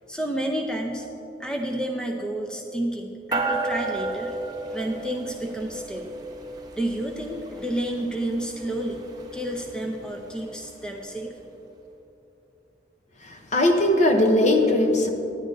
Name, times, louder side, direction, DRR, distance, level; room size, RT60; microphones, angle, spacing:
voice 1, 0.1-1.1 1.4-4.3 4.7-6.2 6.8-9.0 9.3-11.3, right 1 dB, 5° left, 2 dB, 0.5 m, -30 dB
sound 1, 3.3-11.0, right 2 dB, 25° right, 1.0 m, -34 dB
voice 2, 13.5-15.1, left 1 dB, 40° left, 4 dB, 0.8 m, -19 dB
10.0 x 10.0 x 3.9 m, 2.9 s
head